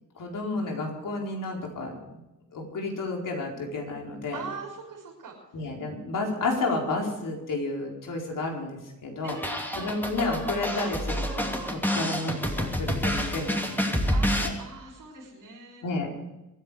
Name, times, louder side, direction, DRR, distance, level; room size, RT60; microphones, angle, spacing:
voice 1, 0.1-2.0 2.5-4.4 5.5-9.4 9.7-14.5 15.8-16.1, left 2 dB, 85° left, 0 dB, 4.6 m, -31 dB
voice 2, 4.3-5.3 9.2-10.0 11.8-12.2 14.1-15.8, right 4 dB, 90° right, -7 dB, 6.7 m, -42 dB
sound 1, 9.3-14.5, equal, 5° left, 2.7 m, -28 dB
sound 2, 12.6-13.5 13.9-14.0, left 2 dB, 65° left, 2.8 m, -39 dB
24.5 x 10.5 x 5.1 m, 0.96 s
wide cardioid pair, 105°, 32 cm